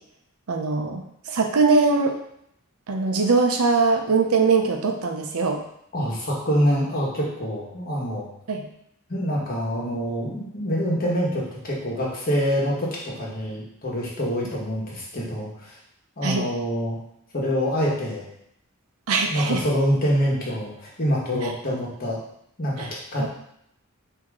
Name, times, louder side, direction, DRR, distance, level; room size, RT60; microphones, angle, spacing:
voice 1, 0.5-2.2 2.9-5.6 8.5-8.6 16.2-16.5 19.1-19.6 21.4-21.5 22.8-22.9 23.2-23.3, right 4 dB, 85° right, 4 dB, 0.6 m, -22 dB
voice 2, 5.9-8.3 9.1-15.8 16.2-17.0 17.3-18.2 19.3-22.2 22.6-23.3, equal, 45° left, -4 dB, 1.2 m, -25 dB
4.7 x 2.8 x 3.6 m, 0.74 s
head